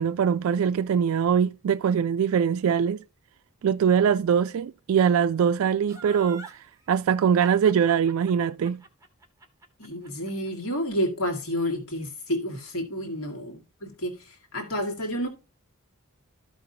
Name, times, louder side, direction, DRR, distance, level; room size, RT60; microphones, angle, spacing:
voice 1, 0.0-3.0 3.6-8.8, right 7 dB, 65° right, 0.3 m, -23 dB
Laughter, 5.9-6.6 7.4-10.5 10.8-10.9, right 4 dB, 15° right, 1.7 m, -43 dB
voice 2, 9.8-15.3, equal, 65° left, 2.0 m, -30 dB
14.0 x 5.3 x 2.8 m
head